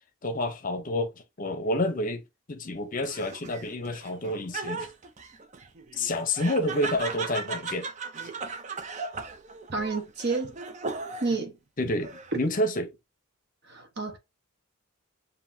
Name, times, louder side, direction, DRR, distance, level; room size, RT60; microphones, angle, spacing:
voice 1, 0.2-1.1 1.4-2.2 2.5-4.9 6.0-7.9 11.8-12.9, left 1 dB, 40° left, 0.7 m, -29 dB
Laughter, 3.0-11.4 11.9-12.5, right 4 dB, 35° right, 0.5 m, -37 dB
voice 2, 9.7-10.6 11.2-11.6 12.3-12.4 13.7-14.2, right 3 dB, 50° right, 1.1 m, -29 dB
7.3 x 2.7 x 2.7 m
head